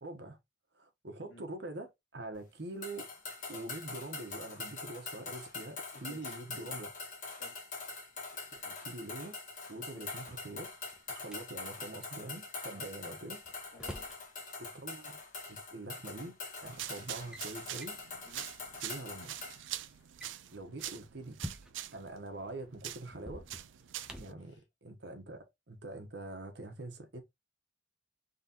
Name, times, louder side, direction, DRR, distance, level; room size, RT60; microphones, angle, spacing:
voice 1, 0.0-0.4 0.7-3.1 3.5-6.9 8.5-9.4 9.7-10.7 11.1-13.4 14.6-15.2 15.5-18.0 18.7-19.3 20.5-21.4 21.9-23.5 24.2-24.6 24.8-27.2, right 2 dB, 60° right, 1.0 m, -44 dB
sound 1, 2.8-19.6, left 4 dB, 40° left, 1.3 m, -44 dB
voice 2, 5.9-6.4 7.3-7.6 9.9-10.1 12.7-12.9 13.7-14.0 18.3-18.5 20.9-21.0 24.2-24.6, left 1 dB, 70° left, 1.7 m, -55 dB
Drawer open or close, 10.2-11.4 13.1-14.2 15.5-15.6 16.4-16.7 17.0-17.5 17.8-18.0 18.5-18.6 18.8-19.0 20.0-22.0 23.1-24.5, equal, 5° right, 0.6 m, -48 dB
sound 2, 16.6-24.3, right 12 dB, 75° right, 0.4 m, -45 dB
3.8 x 3.1 x 2.8 m
head